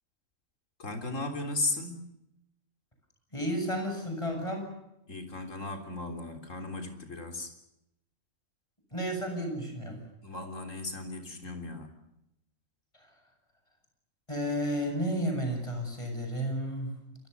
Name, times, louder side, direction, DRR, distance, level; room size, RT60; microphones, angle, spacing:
voice 1, 0.8-2.1 5.1-7.6 10.2-11.9, left 2 dB, 65° left, 5 dB, 3.9 m, -36 dB
voice 2, 3.3-4.7 8.9-10.0 13.0-13.1 14.3-16.9, equal, 20° left, 4 dB, 7.9 m, -32 dB
28.0 x 24.5 x 6.9 m, 0.83 s
omnidirectional pair, 1.4 m